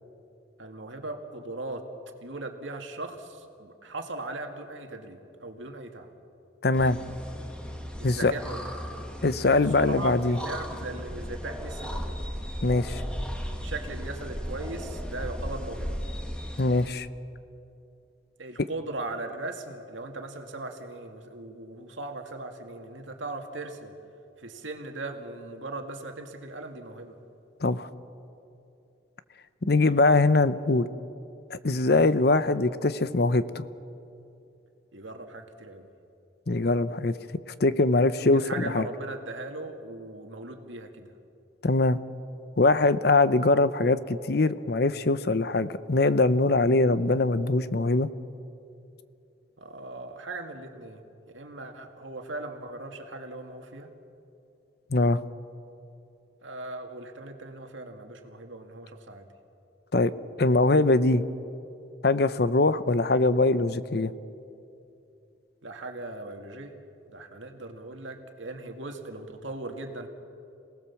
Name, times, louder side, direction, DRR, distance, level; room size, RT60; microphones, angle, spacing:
voice 1, 0.6-1.9 2.2-6.1 8.0-8.7 9.5-12.2 13.6-16.0 18.4-23.9 24.4-27.2 34.9-35.9 38.2-41.1 49.6-51.0 51.3-53.9 56.4-59.3 65.6-66.8 67.1-70.1, right 2 dB, 90° right, 4 dB, 2.1 m, -39 dB
voice 2, 6.6-7.0 8.0-8.3 9.2-10.4 12.6-13.0 16.6-17.1 27.6-27.9 29.6-30.9 31.5-33.6 36.5-37.1 37.6-38.9 41.6-42.0 42.6-48.1 54.9-55.2 59.9-60.1 60.4-61.2 62.0-64.1, left 2 dB, 55° left, 14 dB, 0.7 m, -22 dB
sound 1, 6.7-16.9, equal, 5° left, 1.6 m, -36 dB
27.5 x 18.5 x 7.2 m, 2.7 s
head